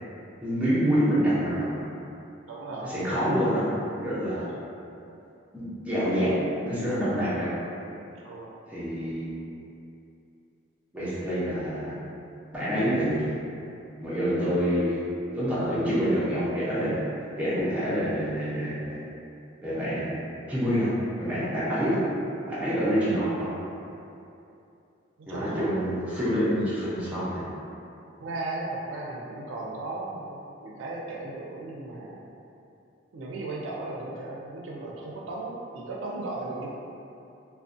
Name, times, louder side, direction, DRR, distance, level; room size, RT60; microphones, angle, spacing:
voice 1, 0.4-1.7 2.8-3.6 4.0-4.4 5.5-6.3 6.6-7.5 8.7-9.4 10.9-11.9 12.5-13.3 14.0-15.0 15.3-17.0 17.4-19.0 19.6-20.2 20.5-20.9 21.2-22.0 22.5-23.5 25.3-27.5, equal, 5° right, -11 dB, 0.5 m, -27 dB
voice 2, 2.4-2.9 4.5-4.6 8.2-8.5 25.2-26.7 28.2-32.3 33.1-36.7, right 2 dB, 80° right, -3 dB, 0.4 m, -36 dB
2.4 x 2.1 x 2.5 m, 2.7 s
head